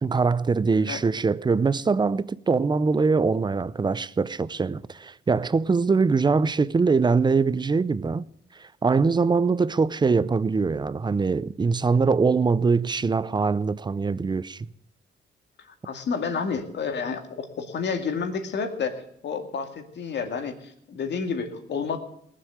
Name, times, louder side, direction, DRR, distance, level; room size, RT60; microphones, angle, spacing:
voice 1, 0.0-8.3 8.6-14.7, right 4 dB, 20° right, 0.5 m, -23 dB
voice 2, 15.8-22.0, left 5 dB, 60° left, 2.2 m, -30 dB
19.0 x 7.6 x 8.0 m
cardioid pair, 90°, 20 cm